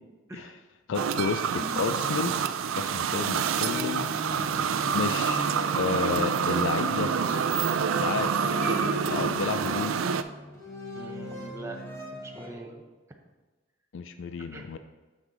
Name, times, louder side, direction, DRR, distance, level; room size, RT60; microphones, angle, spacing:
voice 1, 0.9-2.4 2.8-4.1 4.9-7.1 8.0-8.3 8.6-10.0 13.9-14.8, left 5 dB, 65° left, 10 dB, 0.4 m, -31 dB
sound 1, 0.9-10.2, right 7 dB, 85° right, 0.4 m, -27 dB
sound 2, 1.6-2.8 3.7-4.7 6.2-6.4 7.4-7.8 8.6-8.9, right 1 dB, 35° left, 1.7 m, -44 dB
sound 3, 3.2-12.5, left 2 dB, 15° left, 1.6 m, -39 dB
voice 2, 10.9-11.8 12.1-12.8 14.4-14.6, right 2 dB, 15° right, 1 dB, 0.6 m, -42 dB
7.3 x 6.2 x 3.8 m, 1.3 s
head